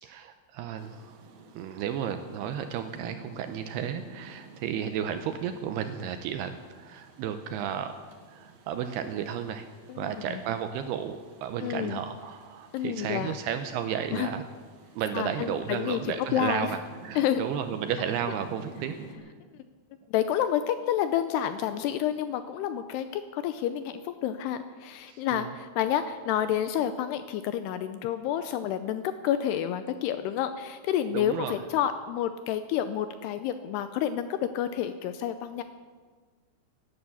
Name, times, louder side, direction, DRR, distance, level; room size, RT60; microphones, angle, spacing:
voice 1, 0.0-1.2 1.6-7.9 8.3-9.7 10.0-14.4 15.0-18.9 25.1-25.5 31.1-31.6, right 8 dB, 85° right, 8 dB, 2.4 m, -33 dB
Rain, 0.8-19.2, right 5 dB, 60° right, 2.0 m, -51 dB
voice 2, 9.9-10.4 11.6-12.0 12.7-13.3 14.1-14.3 15.1-16.7 17.2-17.4 20.1-35.6, left 10 dB, 80° left, 11 dB, 2.4 m, -29 dB
17.5 x 11.0 x 7.0 m, 1.5 s
omnidirectional pair, 5.2 m